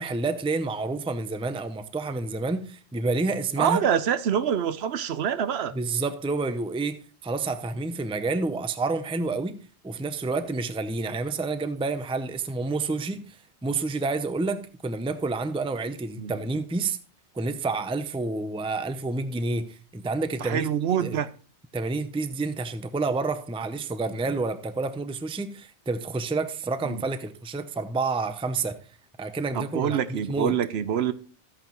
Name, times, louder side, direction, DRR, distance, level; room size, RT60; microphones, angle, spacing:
voice 1, 0.0-3.8 5.7-17.0 17.3-20.7 21.0-21.2 21.7-28.8 29.2-30.6, right 3 dB, 5° right, 0.4 m, -29 dB
voice 2, 3.6-5.7 16.2-16.3 20.4-21.3 26.8-27.0 29.5-31.1, right 8 dB, 70° right, 0.9 m, -26 dB
13.0 x 8.6 x 3.0 m
omnidirectional pair, 1.2 m